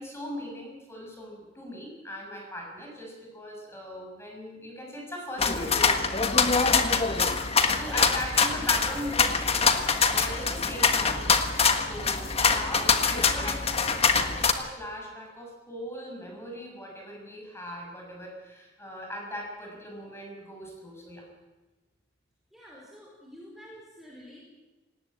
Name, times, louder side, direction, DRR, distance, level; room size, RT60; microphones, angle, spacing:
voice 1, 0.0-6.9 7.7-9.4 10.1-11.2 11.8-21.3, equal, 15° left, 0 dB, 6.7 m, -39 dB
sound 1, 5.4-14.5, left 5 dB, 35° left, 1.5 m, -24 dB
voice 2, 22.5-24.4, equal, ahead, -4 dB, 4.6 m, -48 dB
19.5 x 18.0 x 8.8 m, 1.2 s
head